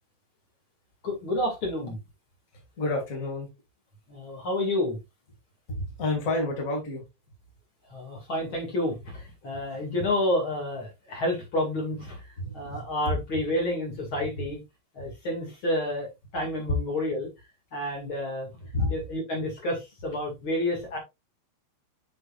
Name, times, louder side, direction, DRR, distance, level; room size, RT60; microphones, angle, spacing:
voice 1, 1.0-2.0 4.1-5.0 7.9-12.2 12.5-14.6 14.9-17.3 17.7-18.5 18.9-21.0, left 1 dB, 40° left, 2.0 m, -29 dB
voice 2, 2.8-3.5 5.7-7.0 12.4-13.5 16.7-16.8 18.7-18.9, left 2 dB, 80° left, 0.7 m, -29 dB
7.1 x 6.4 x 2.4 m
omnidirectional pair, 5.4 m